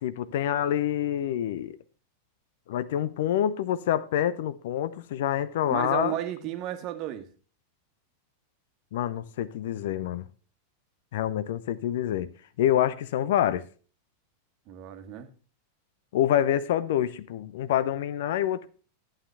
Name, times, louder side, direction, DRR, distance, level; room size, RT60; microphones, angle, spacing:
voice 1, 0.0-1.8 2.7-6.2 8.9-10.2 11.1-12.3 12.6-13.6 16.1-18.7, left 11 dB, 55° left, 0.6 m, -27 dB
voice 2, 5.7-7.3 14.7-15.3, right 12 dB, 40° right, 1.5 m, -33 dB
11.0 x 8.8 x 3.4 m
figure-of-eight pair, 90°, 0 cm